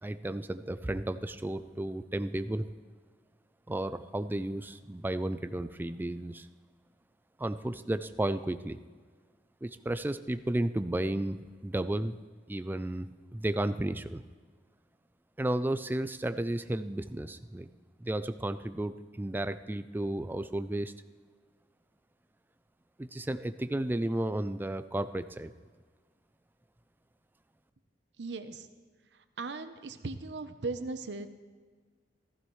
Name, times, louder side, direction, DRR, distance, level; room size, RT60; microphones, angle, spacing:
voice 1, 0.0-2.7 3.7-6.5 7.4-8.8 9.6-12.2 12.5-14.2 15.4-17.7 18.0-20.9 23.0-25.5, right 1 dB, 10° right, 12 dB, 0.4 m, -33 dB
voice 2, 28.2-28.7 29.1-31.3, right 3 dB, 75° right, 10 dB, 0.8 m, -38 dB
15.0 x 14.5 x 3.2 m, 1.5 s
head